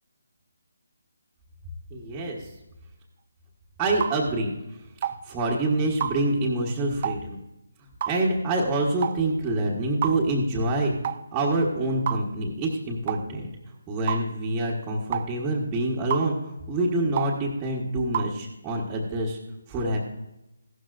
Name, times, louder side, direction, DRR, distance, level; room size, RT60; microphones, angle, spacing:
voice 1, 1.9-2.5 3.8-4.8 5.0-7.4 8.0-10.9 11.3-13.5 13.9-19.4 19.7-20.0, right 2 dB, 15° right, -6 dB, 1.3 m, -26 dB
sound 1, 4.0-4.2 5.0-5.2 6.0-6.2 7.0-7.2 8.0-8.2 9.0-9.2 10.0-10.2 11.0-11.2 12.1-12.3 13.1-13.2 14.1-14.2 15.1-15.3 16.1-16.3 17.2-17.3 18.1-18.3, right 8 dB, 35° right, 0.5 m, -28 dB
15.5 x 12.5 x 2.6 m, 0.94 s
figure-of-eight pair, 155°, 0 cm